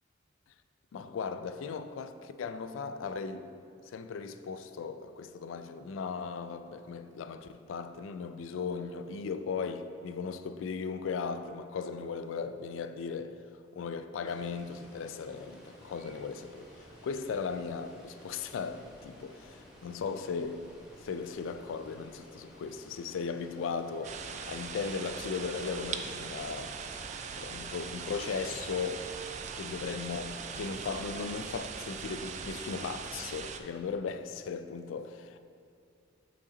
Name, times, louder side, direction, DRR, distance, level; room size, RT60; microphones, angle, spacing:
voice 1, 0.9-3.5 3.9-13.3 13.7-16.7 17.0-20.7 21.0-24.2 24.5-26.8 27.3-29.1 29.5-35.4, left 5 dB, 80° left, 0.3 m, -37 dB
Water, 14.2-32.7, equal, 5° right, 1.1 m, -54 dB
sound 1, 24.0-33.6, right 6 dB, 40° right, 0.3 m, -41 dB
5.7 x 5.0 x 3.9 m
head